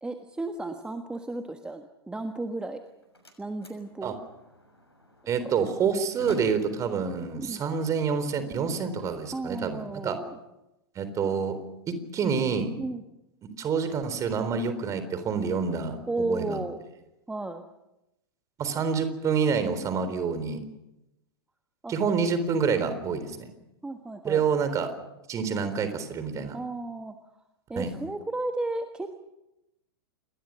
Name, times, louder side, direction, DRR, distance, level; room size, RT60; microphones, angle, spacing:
voice 1, 0.0-2.8 3.4-4.1 7.4-7.6 9.3-10.4 12.8-13.0 16.1-16.8 17.3-17.6 20.0-20.1 21.8-21.9 23.8-24.4 26.5-27.1 27.7-29.1, right 2 dB, 5° right, 7 dB, 1.4 m, -33 dB
Slam, 2.7-8.6, equal, 85° left, 6.5 m, -49 dB
voice 2, 5.3-10.2 11.0-11.6 11.9-12.7 13.6-16.6 18.6-20.6 21.9-23.5 24.2-24.9 25.3-26.6 27.7-27.9, right 6 dB, 25° right, 11 dB, 3.7 m, -27 dB
28.5 x 21.0 x 6.3 m, 0.92 s
figure-of-eight pair, 100°, 13 cm